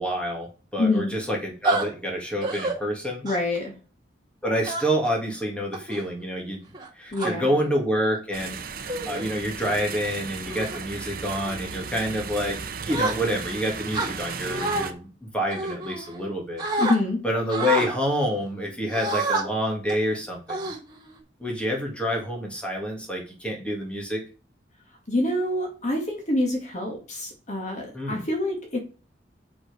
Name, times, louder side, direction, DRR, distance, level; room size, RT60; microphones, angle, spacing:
voice 1, 0.0-3.3 4.4-6.6 7.0-12.6 12.9-15.1 15.3-16.6 17.2-20.7 21.4-24.2 27.9-28.2, equal, 5° left, -1 dB, 2.4 m, -28 dB
voice 2, 0.8-1.1 3.2-3.7 7.1-7.6 16.8-17.3 25.1-28.8, left 2 dB, 40° left, 1 dB, 2.1 m, -26 dB
sound 1, 1.6-1.8 2.4-2.7 3.3-3.6 4.7-5.1 5.7-6.0 6.7-7.3 8.1-8.4 8.9-9.2 9.7-10.0 10.5-10.8 11.3-11.6 12.9-13.5 13.9-14.9 15.5-16.3 16.6-17.0 17.5-17.9 18.9-19.4 19.9-20.1 20.5-21.2, right 2 dB, 20° right, 2.7 m, -28 dB
sound 2, 8.3-14.9, right 5 dB, 50° right, 0.9 m, -35 dB
7.7 x 6.0 x 5.3 m, 0.36 s
head